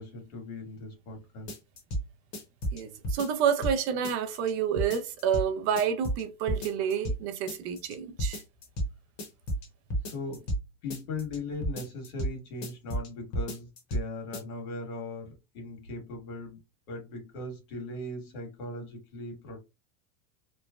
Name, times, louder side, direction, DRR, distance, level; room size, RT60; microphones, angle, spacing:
voice 1, 0.0-1.5 10.1-10.5 10.8-16.6 16.9-19.6, left 2 dB, 65° left, 1.5 m, -39 dB
sound 1, 1.5-2.0 2.3-3.8 4.0-4.5 4.8-5.5 5.8-6.2 6.5-7.2 7.5-7.9 8.2-8.9 9.2-10.6 10.9-11.4 11.6-12.3 12.6-13.1 13.3-14.0 14.3-14.4, right 1 dB, 35° left, 0.9 m, -32 dB
voice 2, 2.7-8.4, right 8 dB, 50° right, 0.4 m, -29 dB
3.1 x 2.1 x 2.3 m
supercardioid pair, 145°, 45 cm